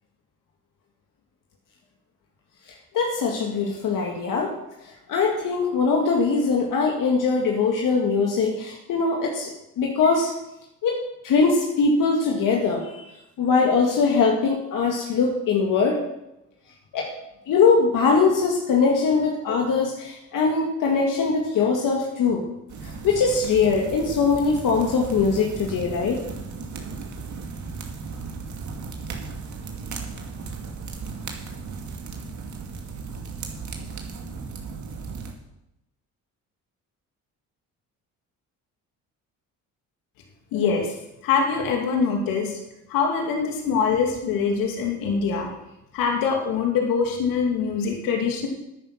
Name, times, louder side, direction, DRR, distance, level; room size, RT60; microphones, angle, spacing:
voice 1, 2.9-4.6 5.1-10.3 10.8-11.0 11.2-13.1 13.4-16.0 16.9-17.1 17.5-22.4 22.8-26.2, left 4 dB, 70° left, 0 dB, 2.1 m, -21 dB
sound 1, 22.7-35.3, right 4 dB, 60° right, 2.3 m, -36 dB
voice 2, 40.5-40.9 41.2-42.6 42.9-45.5 45.9-48.5, left 5 dB, 90° left, 2 dB, 2.4 m, -23 dB
11.0 x 9.5 x 6.4 m, 0.88 s
cardioid pair, 85°, 33 cm